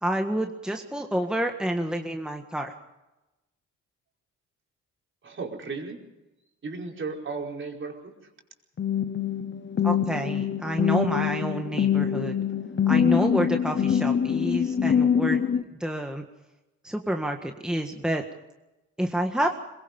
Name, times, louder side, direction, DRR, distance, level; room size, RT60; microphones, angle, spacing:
voice 1, 0.0-2.7 9.8-12.4 12.9-15.4 15.7-16.2 16.8-18.2 19.0-19.5, right 1 dB, 5° right, 3 dB, 1.6 m, -28 dB
voice 2, 5.2-6.0 6.6-8.1, right 4 dB, 40° right, 0 dB, 5.0 m, -35 dB
sound 1, 8.8-15.6, left 8 dB, 40° left, 1.1 m, -24 dB
22.5 x 22.0 x 5.4 m, 1.0 s
cardioid pair, 90°, 30 cm